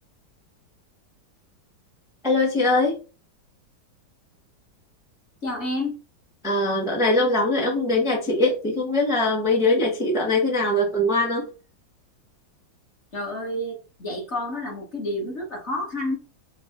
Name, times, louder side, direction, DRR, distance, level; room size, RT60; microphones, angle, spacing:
voice 1, 2.2-3.0 6.4-11.5, left 2 dB, 5° right, -2 dB, 0.4 m, -22 dB
voice 2, 5.4-5.9 13.1-16.1, left 1 dB, 35° left, -1 dB, 1.4 m, -29 dB
5.1 x 2.4 x 3.5 m, 0.33 s
omnidirectional pair, 2.3 m